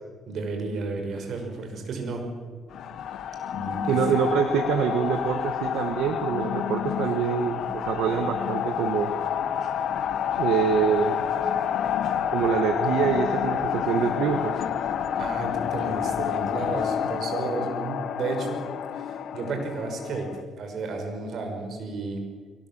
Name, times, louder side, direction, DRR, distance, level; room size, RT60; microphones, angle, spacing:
voice 1, 0.3-2.2 3.5-4.1 15.2-18.6 18.9-20.3 20.6-22.2, right 3 dB, 65° right, 4 dB, 6.0 m, -32 dB
sound 1, 2.7-20.4, left 9 dB, 70° left, 1.4 m, -29 dB
voice 2, 3.9-9.1 10.4-11.2 12.3-14.5, right 7 dB, 85° right, 7 dB, 1.5 m, -25 dB
22.0 x 19.5 x 7.7 m, 1.5 s
cardioid pair, 90°, 0 cm